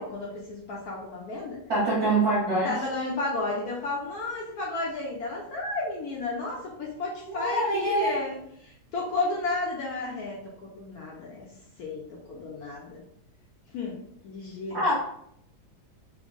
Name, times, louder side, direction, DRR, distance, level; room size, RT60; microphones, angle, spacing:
voice 1, 0.0-1.6 2.6-11.5 11.8-13.0 13.7-14.0 14.2-14.9, left 2 dB, 70° left, -3 dB, 0.9 m, -33 dB
voice 2, 1.7-2.7 7.2-8.2 14.7-14.9, right 1 dB, 55° right, -6 dB, 1.3 m, -24 dB
3.4 x 2.0 x 3.7 m, 0.71 s
omnidirectional pair, 2.2 m